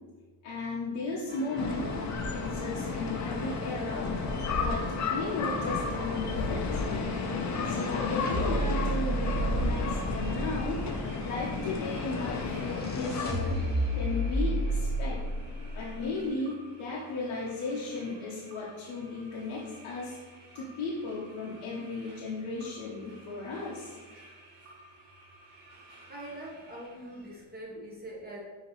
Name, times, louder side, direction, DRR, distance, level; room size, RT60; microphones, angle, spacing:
voice 1, 0.4-1.9 2.3-4.2 4.6-7.2 7.6-10.8 11.2-13.6 13.9-15.2 15.7-20.2 20.5-23.9, left 3 dB, 85° left, -5 dB, 0.8 m, -35 dB
sound 1, 1.3-16.3, right 1 dB, 20° left, 1.0 m, -35 dB
sound 2, 1.6-13.3, left 4 dB, 35° left, 0.5 m, -32 dB
sound 3, 7.7-27.4, right 1 dB, 85° right, 1.2 m, -54 dB
voice 2, 26.1-28.4, right 1 dB, 20° right, -4 dB, 1.0 m, -43 dB
5.6 x 2.9 x 3.0 m, 1.4 s
cardioid pair, 90°, 49 cm